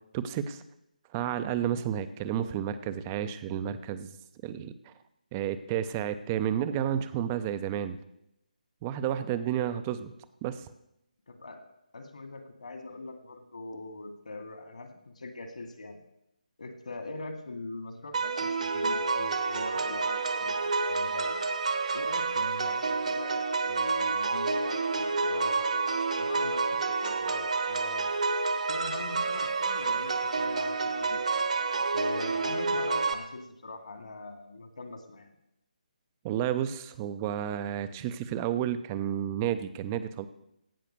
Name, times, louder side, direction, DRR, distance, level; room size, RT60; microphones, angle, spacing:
voice 1, 0.1-0.6 1.1-4.1 4.4-4.9 5.3-8.0 8.8-10.1 10.4-10.7 36.2-40.3, right 10 dB, 15° right, 12 dB, 0.6 m, -31 dB
voice 2, 11.3-11.6 11.9-16.0 16.6-21.4 21.9-25.8 26.2-28.1 28.7-31.2 31.9-35.3, left 2 dB, 55° left, 6 dB, 2.1 m, -42 dB
sound 1, 18.1-33.1, right 4 dB, 55° right, 1.2 m, -29 dB
16.5 x 5.8 x 6.7 m, 0.82 s
figure-of-eight pair, 150°, 5 cm